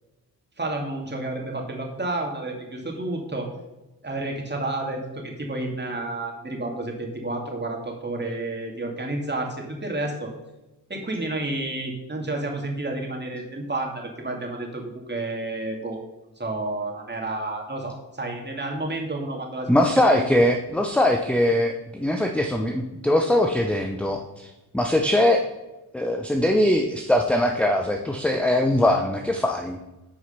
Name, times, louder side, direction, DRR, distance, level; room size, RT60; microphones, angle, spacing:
voice 1, 0.6-3.5 4.0-10.3 10.9-16.0 16.4-20.2, right 2 dB, 25° right, 1 dB, 2.5 m, -30 dB
voice 2, 19.7-25.4 25.9-29.8, left 1 dB, 5° left, 3 dB, 0.8 m, -21 dB
8.7 x 4.7 x 5.9 m, 1.0 s
supercardioid pair, 55°, 40 cm